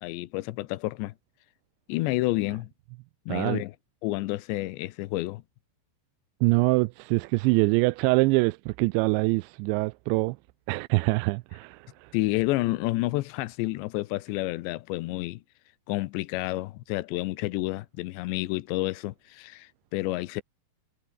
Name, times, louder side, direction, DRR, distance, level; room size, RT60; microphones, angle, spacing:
voice 1, 0.0-1.1 1.9-2.7 3.3-3.7 4.0-5.4 12.1-15.4 15.9-20.4, left 19 dB, 85° left, 3.1 m, -29 dB
voice 2, 3.3-3.6 6.4-10.4 10.7-12.1, right 25 dB, 90° right, 2.8 m, -24 dB
omnidirectional pair, 5.0 m